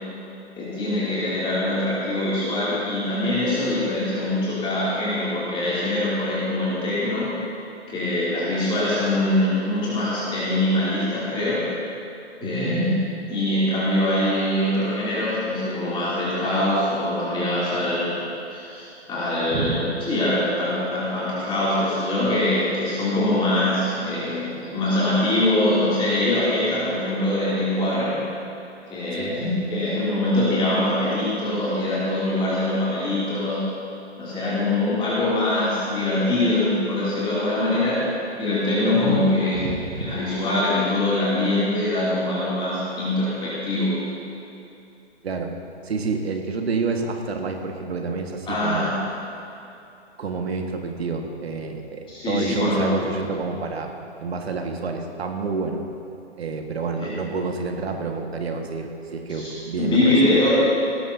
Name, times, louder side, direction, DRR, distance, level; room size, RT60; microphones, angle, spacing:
voice 1, 0.6-7.3 7.9-11.6 12.4-13.0 13.3-18.2 18.5-28.2 28.9-33.7 34.2-38.0 38.4-39.7 40.0-44.0 48.5-48.9 52.1-52.9 57.0-57.1 59.3-60.5, left 1 dB, 15° left, -9 dB, 2.8 m, -23 dB
voice 2, 12.4-12.7 19.5-19.8 29.2-29.4 38.9-39.3 39.5-40.1 45.2-45.5 45.8-48.9 50.2-53.9 54.2-55.8 56.4-60.5, right 4 dB, 65° right, 3 dB, 1.7 m, -28 dB
18.0 x 13.0 x 2.8 m, 2.8 s
figure-of-eight pair, 130°, 34 cm